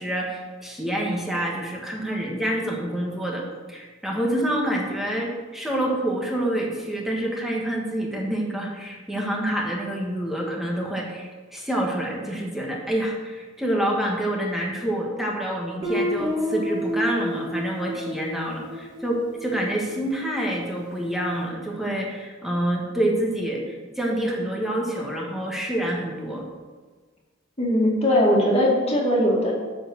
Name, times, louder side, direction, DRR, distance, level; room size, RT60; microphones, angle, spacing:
voice 1, 0.0-3.4 3.7-26.4, right 1 dB, ahead, -2 dB, 1.5 m, -27 dB
Guitar, 15.8-20.5, equal, 25° right, 1.7 m, -30 dB
voice 2, 27.6-29.5, equal, 30° left, -3 dB, 2.3 m, -20 dB
7.9 x 6.6 x 6.3 m, 1.4 s
head